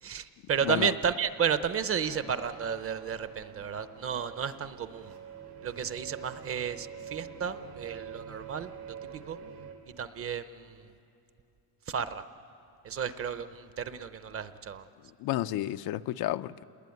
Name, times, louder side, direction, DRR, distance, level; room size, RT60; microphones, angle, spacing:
voice 1, 0.0-5.1 5.6-8.7 9.1-9.4 10.0-10.9 11.9-12.2 12.8-14.9, right 7 dB, 35° right, 0.8 m, -32 dB
sound 1, 2.1-9.7, right 8 dB, 90° right, 4.0 m, -46 dB
voice 2, 15.2-16.6, left 14 dB, 75° left, 0.6 m, -31 dB
28.0 x 20.5 x 9.5 m
cardioid pair, 160°, 37 cm